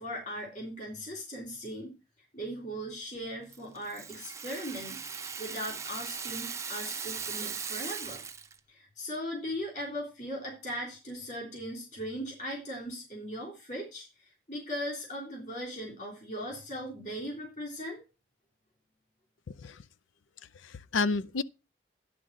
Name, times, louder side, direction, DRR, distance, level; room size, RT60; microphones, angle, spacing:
voice 1, 0.0-1.9 2.3-8.2 8.7-18.0, equal, 40° left, 3.4 m, -39 dB
Rattle (instrument), 3.5-8.6, right 6 dB, 15° right, 0.5 m, -39 dB
voice 2, 19.5-19.8 20.6-21.4, left 4 dB, 90° left, 0.5 m, -30 dB
11.0 x 3.8 x 7.4 m
head